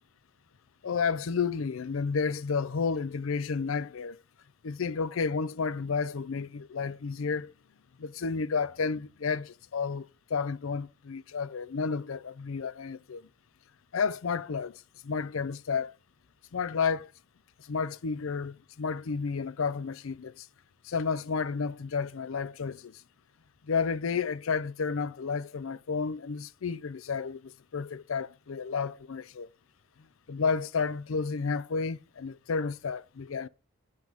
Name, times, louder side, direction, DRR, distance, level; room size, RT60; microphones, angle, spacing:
voice 1, 0.8-4.2 4.6-7.5 8.0-13.3 13.9-16.0 16.5-17.1 17.6-20.5 20.8-23.0 23.6-29.5 30.3-33.5, left 5 dB, 80° left, 0.5 m, -31 dB
8.8 x 8.1 x 3.6 m
head